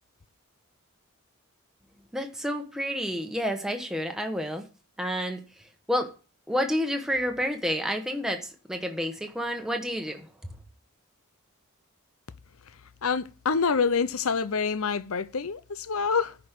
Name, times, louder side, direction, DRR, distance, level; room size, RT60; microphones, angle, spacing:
voice 1, 2.1-4.7 5.0-5.4 5.9-6.1 6.5-10.3, equal, ahead, 1.1 m, -29 dB
voice 2, 13.0-16.4, left 5 dB, 80° left, 0.8 m, -26 dB
10.5 x 5.3 x 8.2 m
head